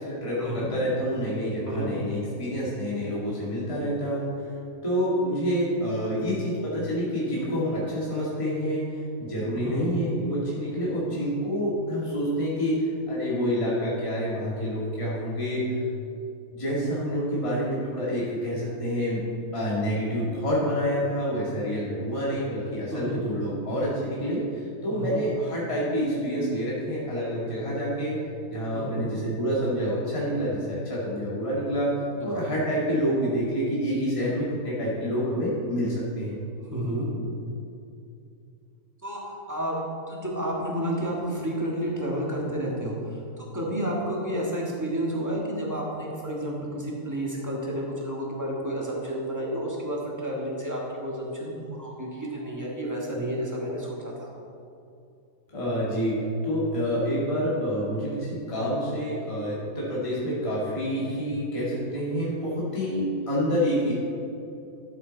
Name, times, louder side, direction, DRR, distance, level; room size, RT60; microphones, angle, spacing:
voice 1, 0.0-4.3 4.8-8.9 9.2-15.8 16.5-19.2 19.5-28.2 28.5-31.9 32.2-36.4 55.5-56.2 56.4-63.9, equal, 20° left, -7 dB, 1.9 m, -28 dB
voice 2, 9.5-9.9 22.9-23.2 24.9-25.2 28.9-29.1 32.2-32.5 36.6-37.1 39.0-39.8 40.1-54.3, equal, 10° right, -4 dB, 1.8 m, -31 dB
12.5 x 7.5 x 4.0 m, 2.7 s
omnidirectional pair, 1.7 m